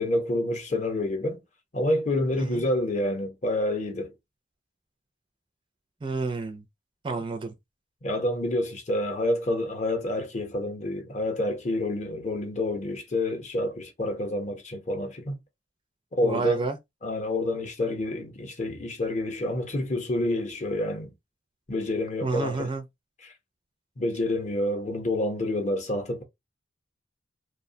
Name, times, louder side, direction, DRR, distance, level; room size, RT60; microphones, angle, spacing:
voice 1, 0.0-1.4 1.7-4.1 8.0-15.4 16.1-16.7 17.0-21.1 21.7-22.7 23.2-23.3 24.0-26.2, left 1 dB, 35° left, 0.6 m, -28 dB
voice 2, 2.4-2.7 6.0-6.6 7.0-7.5 16.2-16.8 22.2-22.8, right 3 dB, 25° right, 0.4 m, -30 dB
2.7 x 2.1 x 2.6 m
head